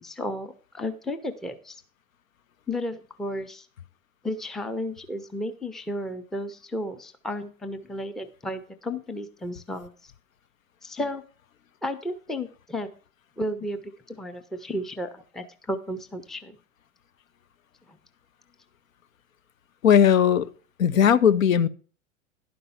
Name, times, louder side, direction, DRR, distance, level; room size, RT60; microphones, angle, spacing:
voice 1, 0.0-1.8 2.7-3.7 4.2-10.1 10.8-11.2 11.8-12.9 13.4-16.6 17.9-18.0, left 1 dB, ahead, 0.5 m, -33 dB
voice 2, 19.8-20.5 20.8-21.7, left 8 dB, 75° left, 0.7 m, -18 dB
11.0 x 5.4 x 5.6 m
figure-of-eight pair, 95°, 41 cm